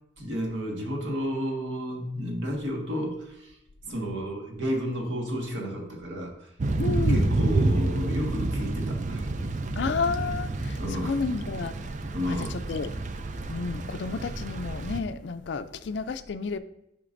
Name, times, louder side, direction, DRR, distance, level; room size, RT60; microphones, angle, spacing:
voice 1, 0.2-3.6 3.8-6.5 7.1-9.3 10.8-11.1 12.1-12.5, equal, 70° right, 1.6 m, -32 dB
Thunder / Rain, 6.6-15.0, right 2 dB, 40° right, 0.4 m, -29 dB
voice 2, 6.8-7.3 9.8-11.7 12.3-12.9 13.5-16.6, left 4 dB, 60° left, 0.4 m, -31 dB
9.0 x 5.8 x 2.6 m
head